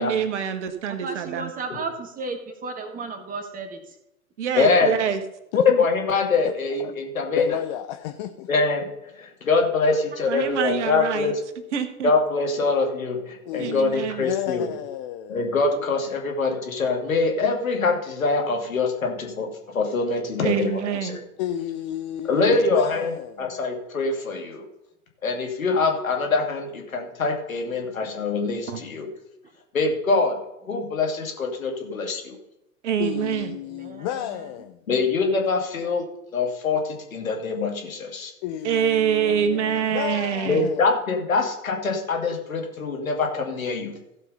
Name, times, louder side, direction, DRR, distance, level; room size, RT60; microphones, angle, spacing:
voice 1, 0.0-1.5 4.4-5.2 10.3-11.3 11.7-12.1 13.6-14.2 20.4-21.2 28.7-28.8 32.8-33.5 38.6-40.7, right 8 dB, 55° right, 1.5 m, -25 dB
voice 2, 0.8-4.0 10.1-10.2 14.5-14.6 15.7-15.8 29.4-29.5 30.7-30.8 33.6-34.5 39.2-40.6, right 3 dB, 20° right, 1.7 m, -36 dB
voice 3, 4.5-5.0 5.6-7.5 8.5-8.9 9.2-11.4 12.0-14.7 15.3-21.2 22.3-24.6 25.2-29.1 29.7-30.4 30.7-32.4 34.9-36.0 36.3-38.3 40.4-44.0, left 4 dB, 70° left, 2.5 m, -24 dB
voice 4, 5.5-5.9 6.4-6.9 7.4-8.5 13.4-13.8 14.2-15.5 21.4-23.6 33.0-34.8 38.4-41.0, left 12 dB, 30° left, 0.6 m, -32 dB
15.5 x 5.6 x 5.4 m
figure-of-eight pair, 100°, 42 cm